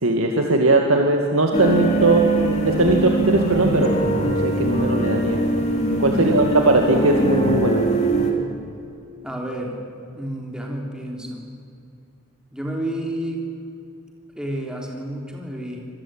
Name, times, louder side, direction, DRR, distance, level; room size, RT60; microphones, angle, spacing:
voice 1, 0.0-2.2 2.6-5.4 6.0-7.8, right 2 dB, 90° right, 2 dB, 2.3 m, -19 dB
sound 1, 1.5-8.3, right 1 dB, 30° left, 3.6 m, -22 dB
voice 2, 6.1-6.7 9.2-9.8 10.1-11.4 12.5-13.4 14.3-15.8, right 1 dB, 5° right, 0 dB, 3.6 m, -30 dB
26.0 x 20.5 x 9.1 m, 2.6 s
head